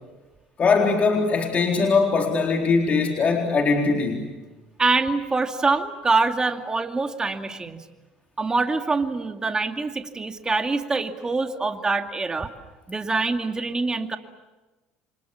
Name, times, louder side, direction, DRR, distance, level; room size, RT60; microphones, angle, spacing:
voice 1, 0.6-4.3, left 4 dB, 40° left, 2 dB, 4.0 m, -21 dB
voice 2, 4.8-7.8 8.4-12.5 12.9-14.2, right 3 dB, 20° right, 6 dB, 2.4 m, -24 dB
29.5 x 25.5 x 7.3 m, 1.1 s
supercardioid pair, 90°, 4 cm